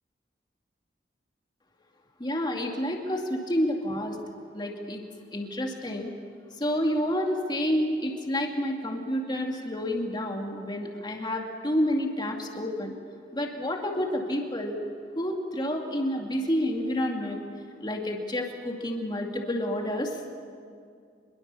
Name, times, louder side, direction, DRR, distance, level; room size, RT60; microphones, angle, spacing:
voice 1, 2.2-4.2 4.5-5.0 5.3-6.1 6.6-12.9 13.3-14.8 15.2-17.4 17.8-20.2, equal, 25° left, 2 dB, 2.3 m, -29 dB
25.0 x 22.0 x 7.0 m, 2.3 s
head